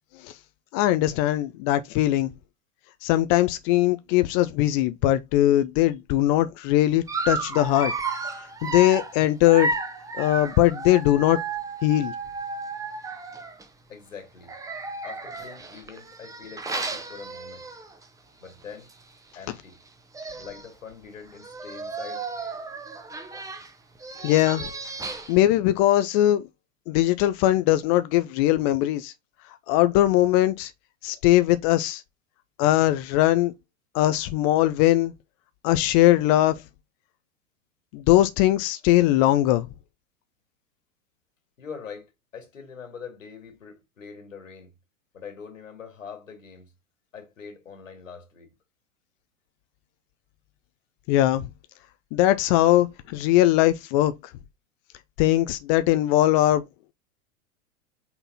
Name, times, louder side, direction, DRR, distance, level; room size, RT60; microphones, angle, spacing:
voice 1, 0.7-2.3 3.0-7.9 8.6-9.7 10.2-11.4 11.8-12.1 24.2-24.7 25.3-26.4 26.9-29.1 29.7-30.7 31.0-32.0 32.6-33.5 33.9-35.1 35.6-36.5 37.9-39.7 51.1-51.5 52.1-54.1 55.2-56.6, left 14 dB, 30° left, 0.4 m, -20 dB
Dog, 7.1-13.7 14.4-18.0 18.4-18.6 18.9-19.0 19.9-20.0 20.1-20.7 21.3-25.4, right 3 dB, 10° right, 0.9 m, -33 dB
voice 2, 13.9-14.6 15.0-17.7 18.4-18.9 19.3-19.8 20.4-22.3 41.6-44.7 45.1-46.7 47.1-48.5, left 6 dB, 75° left, 2.4 m, -43 dB
5.7 x 4.0 x 4.1 m
figure-of-eight pair, 95°, 40 cm